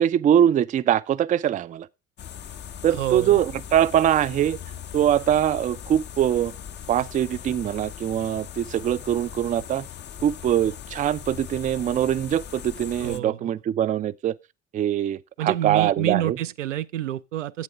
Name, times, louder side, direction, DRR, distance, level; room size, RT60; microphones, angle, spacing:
voice 1, 0.0-1.9 2.8-4.6 4.9-6.5 6.9-9.9 10.2-14.4 14.7-16.4, right 10 dB, 20° right, 0.4 m, -23 dB
sound 1, 2.2-13.2, left 9 dB, 30° left, 0.6 m, -39 dB
voice 2, 3.0-3.4 13.0-13.5 15.4-17.6, right 12 dB, 75° right, 0.5 m, -28 dB
11.5 x 8.3 x 3.5 m
figure-of-eight pair, 60°, 37 cm